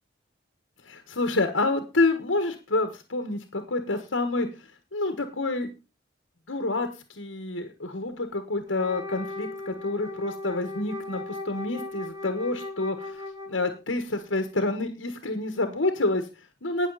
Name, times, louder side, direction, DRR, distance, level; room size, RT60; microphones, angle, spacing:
voice 1, 0.8-5.7 6.5-16.9, left 2 dB, 80° left, 7 dB, 1.5 m, -28 dB
Wind instrument woodwind instrument, 8.7-13.9, left 2 dB, 20° right, 4.9 m, -37 dB
19.5 x 6.8 x 4.1 m, 0.28 s
head